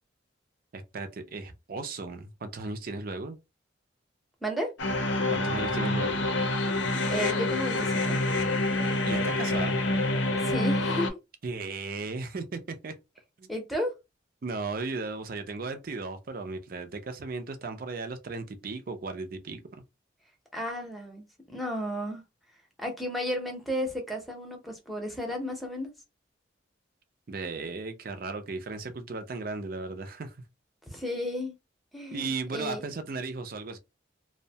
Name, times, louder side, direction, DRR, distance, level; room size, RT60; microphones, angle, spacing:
voice 1, 0.7-3.4 5.3-6.3 9.0-9.8 11.4-13.0 13.4-13.5 14.4-19.8 27.3-30.4 32.1-33.8, right 3 dB, 50° right, 0.5 m, -36 dB
sound 1, 4.8-11.1, left 2 dB, 70° left, 0.5 m, -27 dB
voice 2, 7.1-8.2 10.4-11.1 13.5-13.9 20.5-22.2 22.8-25.9 30.9-31.5 31.9-32.8, equal, ahead, 0.6 m, -33 dB
2.7 x 2.1 x 2.7 m
head